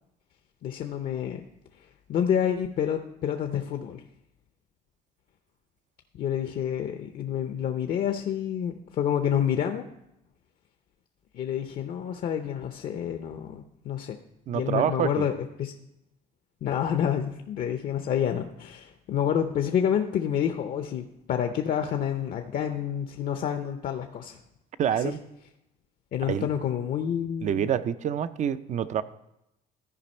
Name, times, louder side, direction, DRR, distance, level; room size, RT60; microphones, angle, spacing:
voice 1, 0.6-1.4 2.1-4.0 6.1-9.9 11.3-14.2 14.5-15.3 15.6-15.7 16.6-24.4 24.9-25.1 26.1-27.7, left 9 dB, 55° left, 6 dB, 0.6 m, -28 dB
voice 2, 14.5-15.3 24.8-25.2 26.3-26.5 27.4-29.0, right 9 dB, 45° right, 14 dB, 0.5 m, -27 dB
14.0 x 5.1 x 4.3 m, 0.85 s
cardioid pair, 110°, 17 cm